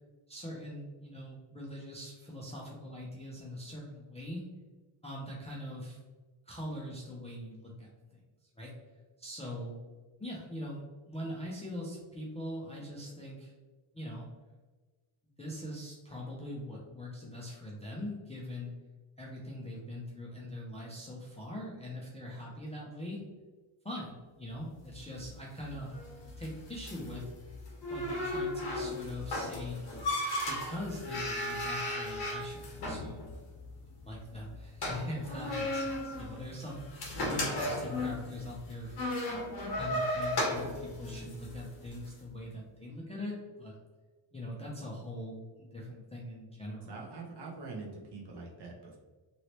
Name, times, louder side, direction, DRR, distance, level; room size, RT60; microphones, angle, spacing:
voice 1, 0.3-4.4 5.0-6.0 6.5-8.2 8.6-8.7 9.2-9.8 10.2-13.5 13.9-14.3 15.4-18.7 19.2-23.2 23.8-26.0 26.4-27.3 27.9-29.8 30.4-33.3 33.9-39.2 39.7-43.8 44.3-47.0, left 1 dB, 15° left, -4 dB, 0.4 m, -42 dB
sound 1, 24.8-42.1, left 1 dB, 50° left, 1.1 m, -36 dB
voice 2, 46.9-49.0, right 3 dB, 55° right, -1 dB, 0.9 m, -44 dB
3.0 x 2.9 x 2.8 m, 1.3 s
wide cardioid pair, 165°, 50 cm